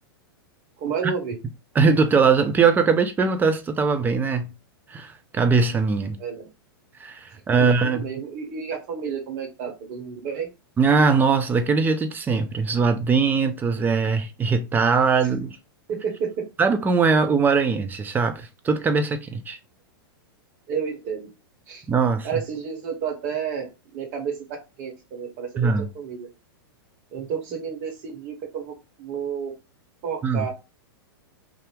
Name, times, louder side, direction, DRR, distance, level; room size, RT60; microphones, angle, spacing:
voice 1, 0.8-1.4 6.2-6.5 7.6-10.5 15.9-16.4 20.7-21.3 21.7-21.8 22.2-25.7 25.9-26.3 27.1-29.5 30.0-30.5, right 7 dB, 45° right, 1.3 m, -31 dB
voice 2, 1.7-4.5 4.9-6.2 7.0-8.1 10.8-15.6 16.6-19.6 21.9-22.4 25.6-25.9 30.2-30.5, right 5 dB, 15° right, 0.5 m, -21 dB
2.8 x 2.4 x 3.3 m
hypercardioid pair, 125°, 13 cm